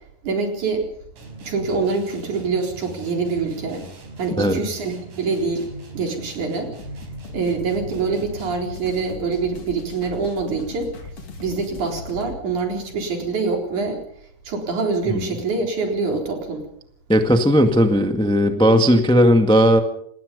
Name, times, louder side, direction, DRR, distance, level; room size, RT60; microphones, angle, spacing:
voice 1, 0.2-0.8 1.4-3.9 4.2-5.7 5.9-6.7 7.3-10.9 11.4-14.0 14.5-16.7, right 4 dB, 65° right, 2 dB, 5.4 m, -25 dB
sound 1, 1.2-8.8, right 2 dB, 80° right, 7.0 m, -40 dB
sound 2, 6.8-12.4, left 3 dB, 45° left, 3.6 m, -39 dB
voice 2, 17.1-19.8, equal, 5° left, 6 dB, 0.8 m, -16 dB
27.5 x 19.5 x 5.4 m, 0.68 s
omnidirectional pair, 3.8 m